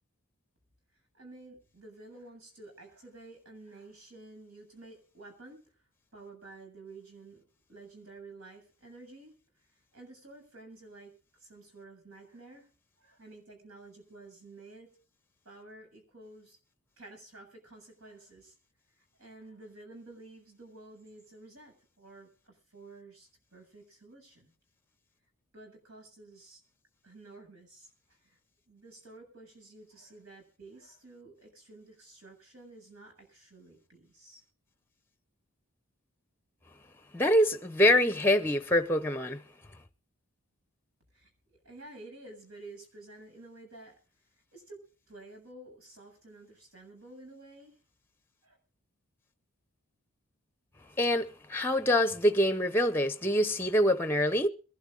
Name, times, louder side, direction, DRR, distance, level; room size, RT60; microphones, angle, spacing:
voice 1, 1.1-5.6 6.1-7.4 7.7-9.3 9.9-12.7 13.0-14.9 15.4-16.6 17.0-18.6 19.0-24.5 25.5-26.6 27.0-28.4 28.7-34.4 41.1-43.9 44.3-47.8 48.4-48.6, right 2 dB, 75° right, 8.0 m, -51 dB
voice 2, 37.1-39.4 51.0-54.5, left 1 dB, 10° left, 0.7 m, -25 dB
23.0 x 12.0 x 3.9 m
head